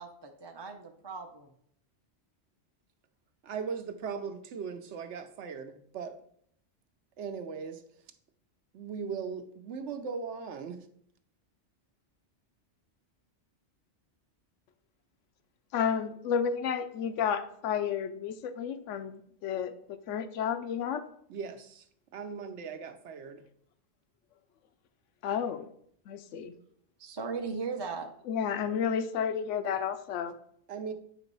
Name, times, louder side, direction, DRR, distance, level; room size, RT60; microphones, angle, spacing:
voice 1, 0.0-1.5 27.0-28.1, right 4 dB, 35° right, 3 dB, 0.4 m, -38 dB
voice 2, 3.4-6.2 7.2-7.8 8.7-10.8 21.3-21.9 22.1-23.4 30.7-30.9, right 6 dB, 75° right, 8 dB, 0.9 m, -38 dB
voice 3, 15.7-21.0 25.2-25.7 26.1-26.5 28.3-30.4, left 7 dB, 90° left, 10 dB, 0.9 m, -31 dB
8.3 x 3.0 x 5.3 m, 0.67 s
omnidirectional pair, 1.2 m